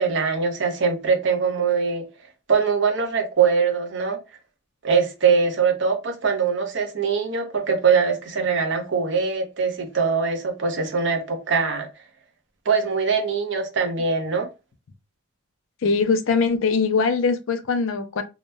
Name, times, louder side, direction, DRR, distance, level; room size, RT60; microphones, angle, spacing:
voice 1, 0.0-2.0 2.5-4.2 4.8-11.9 12.7-14.5, right 5 dB, 60° right, 0.6 m, -22 dB
voice 2, 15.8-18.2, left 4 dB, 75° left, 0.4 m, -21 dB
2.8 x 2.0 x 2.2 m
head